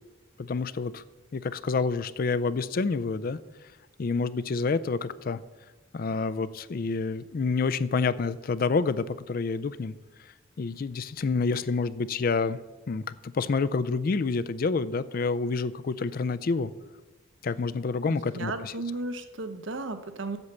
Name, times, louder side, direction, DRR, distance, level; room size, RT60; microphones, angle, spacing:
voice 1, 0.4-1.0 1.3-3.4 4.0-5.4 5.9-9.9 10.2-12.6 12.9-16.7 17.4-18.7, left 4 dB, 45° left, 15 dB, 0.4 m, -28 dB
voice 2, 18.1-20.4, right 2 dB, 70° right, 9 dB, 0.8 m, -34 dB
8.1 x 7.0 x 6.7 m, 1.2 s
head